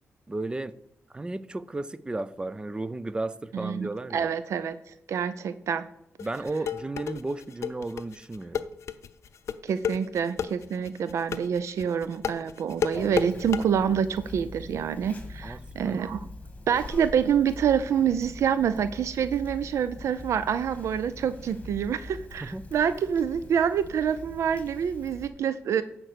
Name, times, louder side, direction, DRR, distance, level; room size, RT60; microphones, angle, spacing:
voice 1, 0.3-0.7 1.1-4.3 6.2-8.7 15.4-16.3 22.4-22.7, right 2 dB, 20° right, 0.5 m, -34 dB
voice 2, 3.5-5.8 9.6-16.3 16.7-25.8, right 8 dB, 85° right, 0.4 m, -27 dB
sound 1, 6.2-13.6, left 8 dB, 75° left, 0.5 m, -31 dB
Conversation, 12.9-25.3, left 2 dB, 25° left, 1.6 m, -43 dB
10.5 x 4.4 x 6.7 m
cardioid pair, 95°, 5 cm